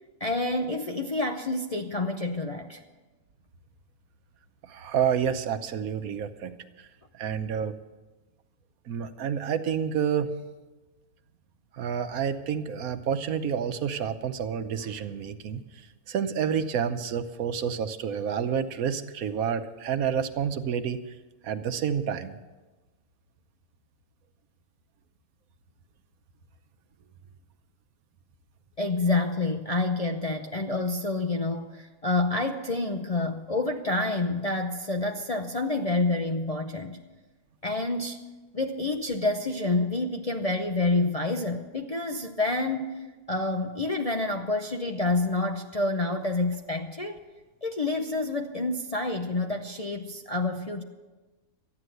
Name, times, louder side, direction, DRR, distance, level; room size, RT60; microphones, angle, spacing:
voice 1, 0.2-2.8 28.8-37.0 37.6-38.2 38.5-47.2 47.6-50.8, left 2 dB, 40° left, 2 dB, 0.5 m, -28 dB
voice 2, 4.6-6.5 7.1-7.7 8.9-10.3 11.8-15.6 16.1-21.0 21.4-22.4, right 7 dB, 75° right, 9 dB, 1.2 m, -29 dB
13.5 x 9.7 x 7.8 m, 1.2 s
omnidirectional pair, 1.6 m